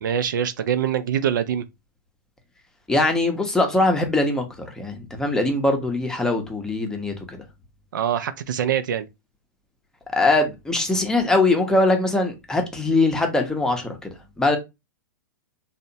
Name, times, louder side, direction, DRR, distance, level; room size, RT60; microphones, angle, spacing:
voice 1, 0.0-1.7 7.9-9.1, right 9 dB, 75° right, 0.4 m, -24 dB
voice 2, 2.9-7.4 10.1-14.6, left 2 dB, 5° left, 0.6 m, -22 dB
2.8 x 2.0 x 2.6 m
hypercardioid pair, 125°, 10 cm